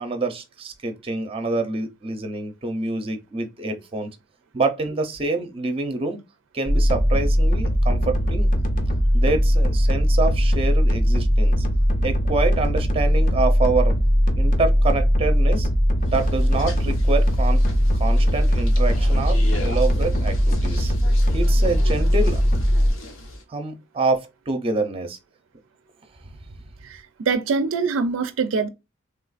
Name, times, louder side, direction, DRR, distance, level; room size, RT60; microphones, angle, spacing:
voice 1, 0.0-4.1 4.5-6.2 6.5-8.5 9.1-11.7 12.0-14.0 14.3-15.7 16.0-17.6 17.9-20.9 21.3-22.4 23.5-25.2 26.3-26.5, right 3 dB, 30° right, 0.6 m, -26 dB
sound 1, 6.7-22.9, equal, 40° left, 0.6 m, -19 dB
sound 2, 16.0-23.4, left 2 dB, 85° left, 1.0 m, -38 dB
voice 2, 26.8-28.7, right 4 dB, 75° right, 0.4 m, -24 dB
3.4 x 2.4 x 2.3 m
head